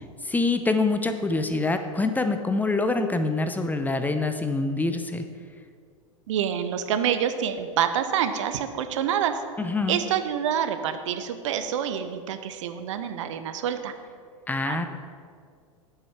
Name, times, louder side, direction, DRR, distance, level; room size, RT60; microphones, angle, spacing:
voice 1, 0.2-5.3 9.6-10.0 14.5-14.9, left 3 dB, 10° left, 8 dB, 0.7 m, -25 dB
voice 2, 6.3-9.4 9.9-13.9 14.6-14.9, right 9 dB, 65° right, 9 dB, 0.8 m, -27 dB
8.6 x 8.4 x 5.8 m, 2.1 s
hypercardioid pair, 90°, 17 cm